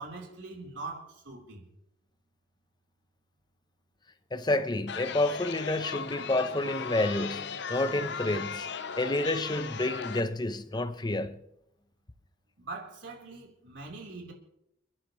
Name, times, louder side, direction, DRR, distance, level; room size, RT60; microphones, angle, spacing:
voice 1, 0.0-1.7 12.6-14.3, right 3 dB, 75° right, 4.0 m, -42 dB
voice 2, 4.3-8.7 9.0-11.4, left 2 dB, 25° left, 0.8 m, -29 dB
Chatter, 4.9-10.2, left 6 dB, 65° left, 0.7 m, -37 dB
30.0 x 11.0 x 3.2 m
head